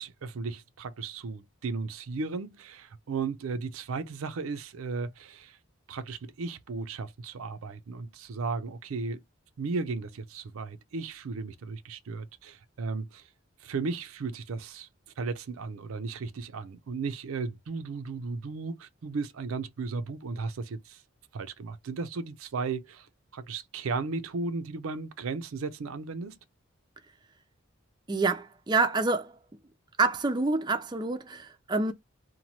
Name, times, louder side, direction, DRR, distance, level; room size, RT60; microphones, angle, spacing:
voice 1, 0.0-5.6 5.9-9.2 9.6-13.3 13.6-14.9 15.2-21.0 21.3-23.1 23.3-26.4, right 4 dB, 90° right, 0.5 m, -35 dB
voice 2, 28.1-29.4 30.0-31.9, right 3 dB, 20° right, 0.4 m, -27 dB
3.0 x 2.2 x 2.7 m
head